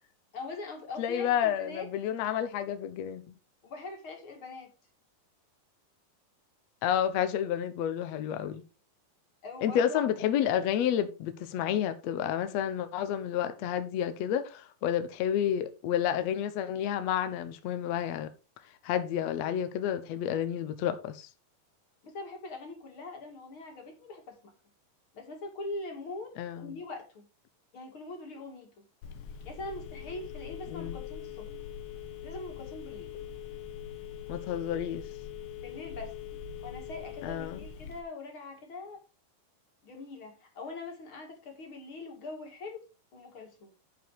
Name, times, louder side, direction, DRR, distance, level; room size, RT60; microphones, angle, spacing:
voice 1, 0.3-1.9 3.6-4.7 9.4-10.1 22.0-24.5 25.1-27.2 27.7-28.8 29.4-31.5 32.2-33.1 35.6-36.1 36.6-39.0 39.8-42.8 43.1-43.7, left 3 dB, 40° left, 2.3 m, -42 dB
voice 2, 1.0-3.2 6.8-8.6 9.6-18.3 18.8-21.3 26.4-26.7 30.7-31.0 34.3-35.0 37.2-37.6, left 10 dB, 85° left, 1.5 m, -30 dB
Telephone, 29.0-38.0, left 8 dB, 65° left, 2.2 m, -42 dB
11.0 x 5.2 x 4.7 m
omnidirectional pair, 4.6 m